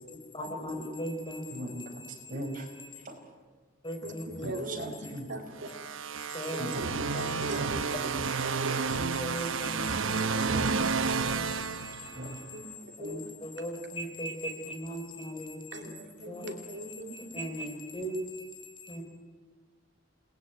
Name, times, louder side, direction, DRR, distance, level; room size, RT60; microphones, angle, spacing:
voice 1, 0.3-1.5 2.0-2.1 3.8-4.5 6.3-7.4 8.9-12.4 13.0-15.9 16.3-16.5 17.1-18.5 18.8-19.0, equal, 25° left, 5 dB, 4.4 m, -38 dB
voice 2, 1.5-2.0 2.3-2.7 3.1-3.2 4.4-5.3 6.6-6.8 7.5-8.0 12.1-12.4, right 1 dB, 45° right, 4 dB, 5.2 m, -39 dB
voice 3, 4.0-4.9 5.3-5.4 6.5-6.9 7.4-8.8 12.5-12.6 13.0-13.3 15.7-17.1, right 1 dB, 60° right, 4 dB, 2.6 m, -40 dB
sound 1, 5.6-12.5, right 5 dB, 85° right, 1.1 m, -31 dB
29.0 x 20.5 x 9.2 m, 1.4 s
head